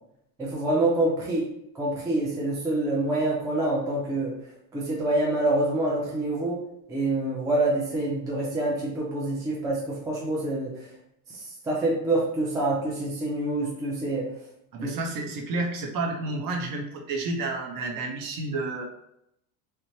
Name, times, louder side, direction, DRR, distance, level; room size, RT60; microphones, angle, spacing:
voice 1, 0.4-1.5 1.8-4.3 4.7-6.6 6.9-10.7 11.7-14.3 14.8-14.9, right 2 dB, 10° right, -4 dB, 0.3 m, -26 dB
voice 2, 14.7-18.8, right 2 dB, 45° right, 1 dB, 0.7 m, -30 dB
2.9 x 2.1 x 2.7 m, 0.77 s
supercardioid pair, 110°, 50 cm